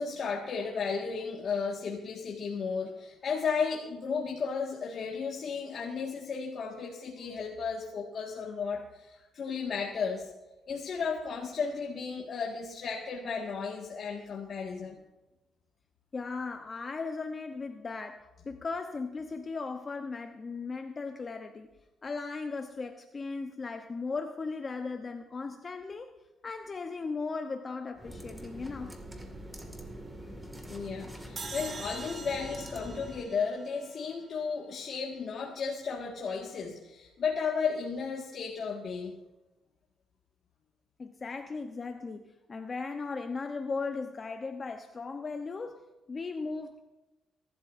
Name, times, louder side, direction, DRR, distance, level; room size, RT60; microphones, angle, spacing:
voice 1, 0.0-10.3 10.7-15.0 30.7-39.2, left 5 dB, 55° left, -2 dB, 1.8 m, -34 dB
voice 2, 16.1-21.7 22.0-26.1 26.4-29.0 41.0-46.8, left 4 dB, 35° left, 6 dB, 0.9 m, -37 dB
sound 1, 27.9-33.3, right 1 dB, 10° right, 2.1 m, -44 dB
sound 2, 31.4-34.6, right 4 dB, 40° right, 2.0 m, -44 dB
23.0 x 12.5 x 2.6 m, 1.0 s
cardioid pair, 90°, 0 cm